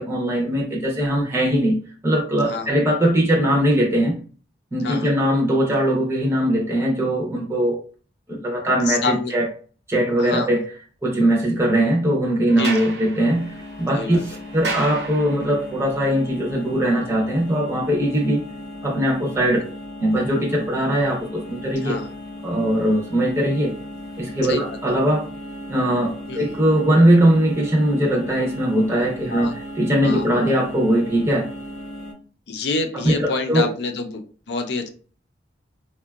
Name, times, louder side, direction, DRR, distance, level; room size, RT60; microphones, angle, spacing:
voice 1, 0.0-1.8 2.0-4.2 4.7-7.8 8.3-9.5 9.9-10.6 11.0-18.4 18.8-19.6 20.0-22.0 22.4-23.7 24.2-25.3 25.7-31.5 32.9-33.7, right 1 dB, 15° right, -1 dB, 0.5 m, -20 dB
voice 2, 8.9-9.3 10.2-10.5 12.6-12.9 13.9-14.2 21.8-22.1 24.5-24.6 26.3-26.5 29.3-29.5 30.0-30.2 32.5-34.2 34.5-34.9, left 3 dB, 70° left, 6 dB, 0.5 m, -26 dB
Sliding door, 12.4-15.7, right 3 dB, 80° right, 0.8 m, -33 dB
sound 1, 13.2-32.1, left 1 dB, 20° left, 0.7 m, -37 dB
3.7 x 2.2 x 2.2 m, 0.41 s
head